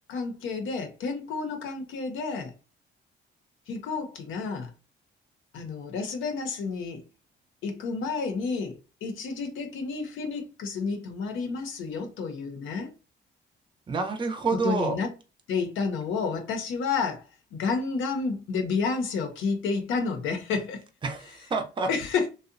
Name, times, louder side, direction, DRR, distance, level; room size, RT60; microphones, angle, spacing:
voice 1, 0.1-2.5 3.7-4.7 5.5-7.0 7.6-12.9 14.6-15.1 15.5-17.2 17.5-20.8 21.9-22.3, left 4 dB, 80° left, 0.6 m, -30 dB
voice 2, 13.9-15.0 21.0-21.9, right 4 dB, 25° right, 0.5 m, -28 dB
2.6 x 2.1 x 2.5 m
cardioid pair, 90°, 20 cm